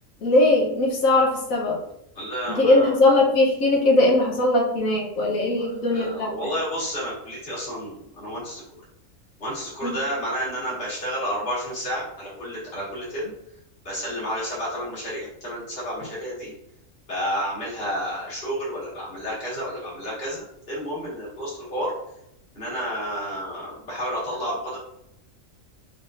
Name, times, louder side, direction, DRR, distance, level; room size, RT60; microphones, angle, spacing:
voice 1, 0.2-1.8 2.5-6.3 9.8-9.9, left 2 dB, 85° left, -1 dB, 1.5 m, -20 dB
voice 2, 2.2-2.9 5.6-8.6 9.4-13.3 13.8-16.5 17.1-21.9 22.5-24.8, equal, 45° left, -7 dB, 2.1 m, -31 dB
5.1 x 3.8 x 2.6 m, 0.80 s
omnidirectional pair, 1.4 m